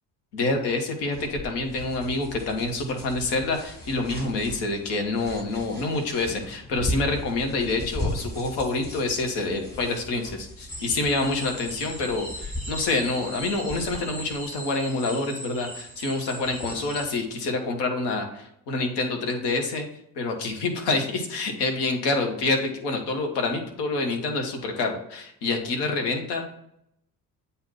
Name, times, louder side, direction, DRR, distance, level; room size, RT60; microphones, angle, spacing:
voice 1, 0.3-19.8 20.2-26.5, left 3 dB, 55° left, 3 dB, 1.2 m, -27 dB
sound 1, 1.1-14.0, left 1 dB, 20° left, 2.4 m, -37 dB
sound 2, 10.7-17.2, equal, 85° left, 1.4 m, -39 dB
7.8 x 2.7 x 5.5 m, 0.75 s
figure-of-eight pair, 50°, 50 cm